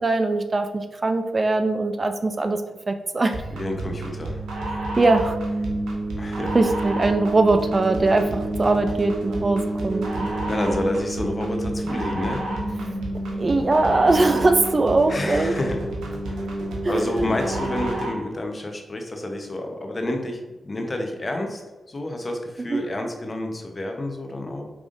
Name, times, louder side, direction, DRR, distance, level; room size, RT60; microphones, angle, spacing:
voice 1, 0.0-2.6 2.9-3.4 5.0-5.4 6.5-10.3 12.8-13.0 13.4-15.5 16.8-17.1 22.7-22.8, right 2 dB, 45° right, 7 dB, 0.4 m, -21 dB
sound 1, 3.3-18.3, right 1 dB, 90° right, 0.8 m, -29 dB
voice 2, 3.5-4.5 6.2-6.6 10.4-12.5 15.1-15.8 16.3-21.6 21.9-24.7, left 1 dB, 40° left, 3 dB, 0.9 m, -29 dB
5.0 x 3.5 x 2.6 m, 1.2 s
supercardioid pair, 45°, 0 cm